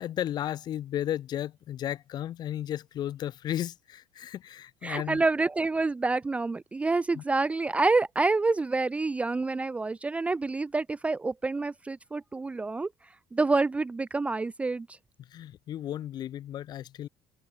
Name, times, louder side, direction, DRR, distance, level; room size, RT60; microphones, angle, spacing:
voice 1, 0.0-5.2 7.1-7.2 15.2-17.1, left 11 dB, 50° left, 2.8 m, -34 dB
voice 2, 4.8-12.9 13.3-14.9, right 3 dB, 15° right, 0.5 m, -27 dB
cardioid pair, 115°, 9 cm